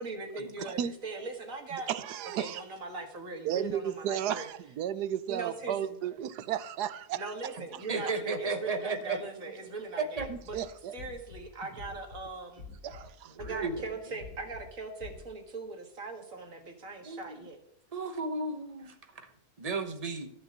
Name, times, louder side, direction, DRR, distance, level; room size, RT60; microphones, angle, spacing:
voice 1, 0.0-1.9 2.4-4.5 5.3-6.0 7.1-10.6 10.9-12.7 13.4-17.6, right 3 dB, 55° right, 2.1 m, -40 dB
voice 2, 0.6-0.9 1.9-2.6 3.4-7.3 10.3-10.9 12.8-13.4, right 10 dB, 85° right, 1.3 m, -34 dB
voice 3, 7.6-9.2 9.9-10.3 12.9-13.1 13.4-13.8 17.0-17.4 17.9-18.9 19.2-19.3 19.6-20.3, right 3 dB, 25° right, 1.0 m, -34 dB
sound 1, 10.2-10.6 11.0-11.4 11.8-12.2 12.6-13.0 13.4-13.8 14.2-14.6 15.0-15.2, left 4 dB, 40° left, 4.4 m, -46 dB
13.5 x 5.8 x 7.5 m
omnidirectional pair, 1.7 m